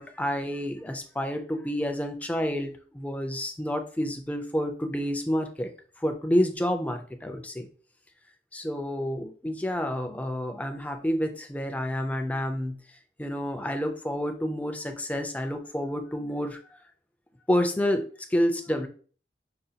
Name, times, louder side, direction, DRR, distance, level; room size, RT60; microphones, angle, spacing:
voice 1, 0.0-5.7 6.0-7.7 8.5-12.8 13.2-16.8 17.5-18.9, equal, 10° left, 5 dB, 0.4 m, -29 dB
4.9 x 2.2 x 2.7 m, 0.42 s
head